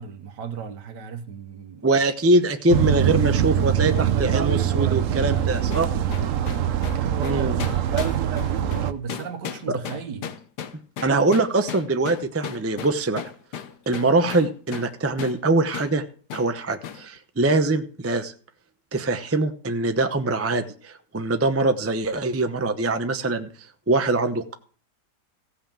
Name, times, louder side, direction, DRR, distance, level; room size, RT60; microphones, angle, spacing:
voice 1, 0.0-2.0 5.3-6.0 6.9-10.3, right 6 dB, 85° right, 1.7 m, -36 dB
voice 2, 1.8-5.9 7.2-7.6 11.0-13.2 13.9-16.0 16.3-18.3 18.9-23.5 23.9-24.5, right 2 dB, 15° right, 0.5 m, -23 dB
sound 1, 2.7-8.9, right 9 dB, 60° right, 1.0 m, -23 dB
sound 2, 5.7-14.9 15.2-15.4 15.7-15.9 16.3-16.5 16.8-17.0, left 8 dB, 75° left, 1.4 m, -36 dB
15.5 x 5.5 x 7.4 m
omnidirectional pair, 1.8 m